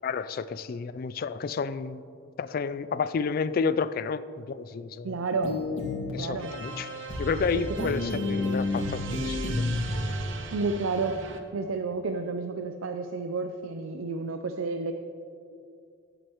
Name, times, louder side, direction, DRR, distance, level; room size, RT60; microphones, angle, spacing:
voice 1, 0.0-2.0 2.4-5.2 6.1-6.9 7.2-9.7, left 5 dB, 45° left, 15 dB, 0.3 m, -30 dB
voice 2, 5.0-5.6 6.2-6.5 7.8-7.9 10.5-11.2 11.5-14.9, right 4 dB, 85° right, 6 dB, 0.5 m, -30 dB
sound 1, 5.4-6.1 7.1-7.4 7.8-10.1, left 2 dB, 65° left, 2.0 m, -30 dB
sound 2, 6.4-11.4, right 3 dB, 65° right, 0.8 m, -39 dB
15.5 x 7.8 x 3.0 m, 2.6 s
head